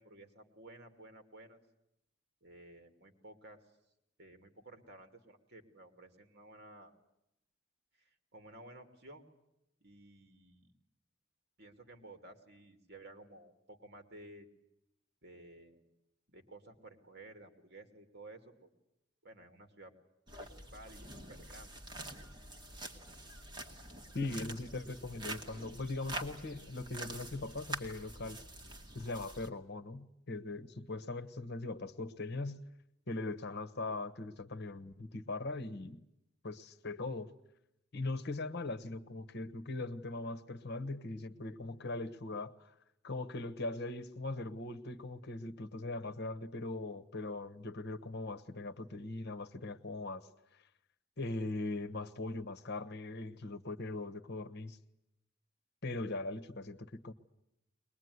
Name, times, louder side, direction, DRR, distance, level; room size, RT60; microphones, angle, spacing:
voice 1, 0.0-1.6 2.4-3.6 4.2-6.9 8.0-9.2 9.8-10.7 11.6-14.5 15.2-15.8 16.3-18.7 19.2-19.9 20.3-21.7, right 2 dB, 55° right, 6 dB, 2.7 m, -54 dB
sound 1, 20.3-29.5, right 1 dB, 25° right, 2.2 m, -46 dB
voice 2, 24.1-28.4 28.9-32.6 33.1-36.0 36.4-37.3 37.9-42.7 43.0-50.3 50.5-50.6 51.2-54.8 55.8-57.1, left 2 dB, 55° left, 12 dB, 1.2 m, -40 dB
22.5 x 21.0 x 9.6 m, 0.83 s
head